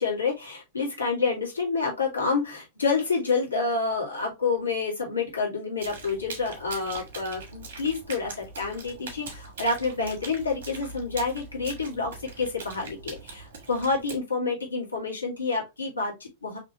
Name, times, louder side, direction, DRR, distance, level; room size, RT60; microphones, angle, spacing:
voice 1, 0.0-16.6, left 4 dB, 90° left, -2 dB, 2.1 m, -28 dB
sound 1, 5.8-14.2, right 3 dB, 65° right, 1.8 m, -42 dB
5.0 x 3.1 x 3.0 m, 0.23 s
figure-of-eight pair, 95°, 0 cm